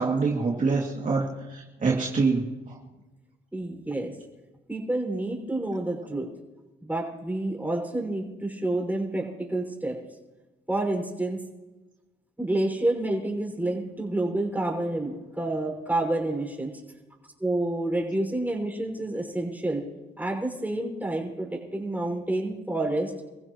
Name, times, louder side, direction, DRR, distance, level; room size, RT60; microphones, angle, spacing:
voice 1, 0.0-2.8, right 4 dB, 40° right, -2 dB, 2.6 m, -26 dB
voice 2, 3.5-4.1 4.7-6.3 6.8-10.0 10.7-11.4 12.4-16.8 17.4-19.8 20.2-23.1, right 2 dB, 10° right, 1 dB, 5.5 m, -29 dB
28.5 x 15.5 x 3.1 m, 1.1 s
cardioid pair, 90°, 20 cm